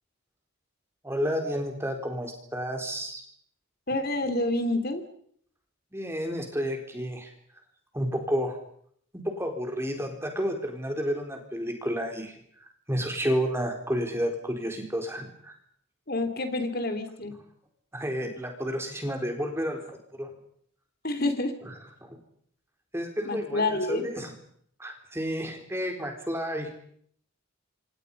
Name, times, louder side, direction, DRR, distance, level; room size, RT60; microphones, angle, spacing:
voice 1, 1.0-3.2 5.9-7.3 7.9-8.6 9.1-12.3 12.9-15.5 17.9-20.3 21.6-21.7 22.0-22.2 22.9-24.3 24.8-26.7, equal, 10° right, 3 dB, 4.1 m, -31 dB
voice 2, 3.9-5.0 16.1-17.3 21.0-21.5 23.2-24.0, left 2 dB, 45° left, 7 dB, 3.3 m, -28 dB
29.0 x 27.0 x 5.5 m, 0.64 s
head